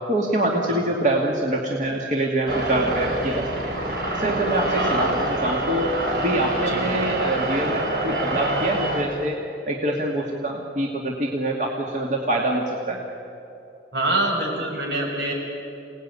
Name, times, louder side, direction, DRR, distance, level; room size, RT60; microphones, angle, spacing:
voice 1, 0.1-3.5 4.1-9.4 9.7-13.0, right 1 dB, 40° right, -1 dB, 2.3 m, -25 dB
sound 1, 2.5-9.0, right 1 dB, 60° right, 4.7 m, -26 dB
voice 2, 4.8-5.1 6.7-6.8 13.9-15.3, right 2 dB, 75° right, 0 dB, 6.5 m, -25 dB
28.5 x 18.5 x 9.7 m, 2.8 s
head